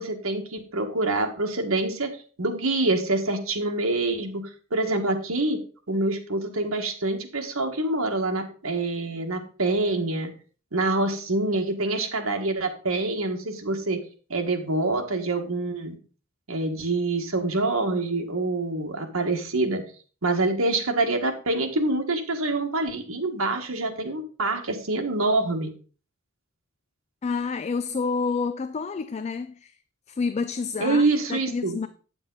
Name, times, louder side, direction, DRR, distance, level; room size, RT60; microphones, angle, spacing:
voice 1, 0.0-2.1 2.4-5.6 5.9-10.3 10.7-14.0 14.3-16.0 16.5-19.8 20.2-25.7 30.8-31.8, right 2 dB, 80° right, 1.6 m, -26 dB
voice 2, 27.2-29.7 30.1-31.0 31.3-31.9, left 4 dB, 30° left, 0.4 m, -28 dB
9.1 x 7.1 x 4.0 m
head